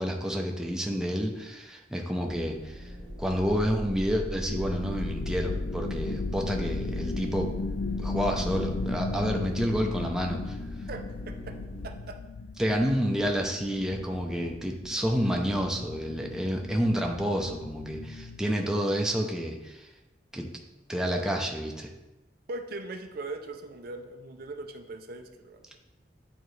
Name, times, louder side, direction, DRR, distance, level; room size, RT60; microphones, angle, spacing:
voice 1, 0.0-2.8 3.2-7.5 8.0-10.6 12.6-19.9 20.3-20.5 20.9-21.9, equal, 5° right, 1 dB, 0.6 m, -29 dB
sound 1, 2.2-11.9, equal, 40° left, 1.4 m, -39 dB
sound 2, 4.5-18.4, left 3 dB, 60° left, 0.3 m, -36 dB
voice 2, 10.9-11.6 11.8-12.2 22.5-25.8, right 2 dB, 55° right, 6 dB, 0.5 m, -40 dB
8.7 x 3.9 x 3.2 m, 1.1 s
head